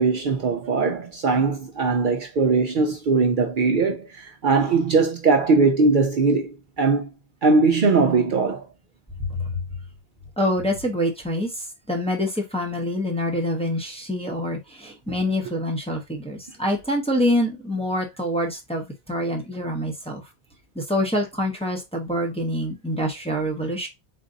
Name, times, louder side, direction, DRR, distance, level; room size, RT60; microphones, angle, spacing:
voice 1, 0.0-7.1 7.4-8.7, right 4 dB, 60° right, 0.7 m, -20 dB
voice 2, 9.2-9.6 10.4-20.2 20.7-23.9, left 1 dB, 5° left, 0.8 m, -26 dB
3.7 x 2.6 x 3.8 m
omnidirectional pair, 1.1 m